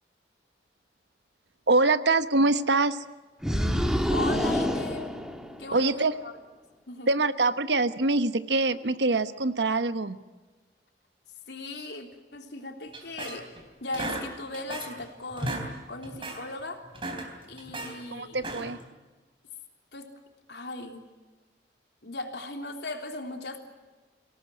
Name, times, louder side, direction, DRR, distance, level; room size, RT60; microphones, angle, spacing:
voice 1, 1.7-3.0 5.7-6.1 7.1-10.2 18.1-18.8, right 3 dB, 75° right, 12 dB, 1.1 m, -24 dB
sound 1, 3.4-5.9, equal, 5° right, 1.7 m, -27 dB
voice 2, 4.1-5.1 5.6-6.3 6.9-7.1 11.5-13.5 13.8-16.8 17.5-18.4 19.9-20.1 20.5-21.0 22.0-23.6, left 2 dB, 70° left, 4 dB, 3.4 m, -37 dB
sound 2, 12.9-13.6 13.9-15.0 15.3-15.7 16.0-16.4 16.8-17.9 18.3-18.8, right 2 dB, 30° right, 3.6 m, -35 dB
25.5 x 18.0 x 9.7 m, 1.3 s
head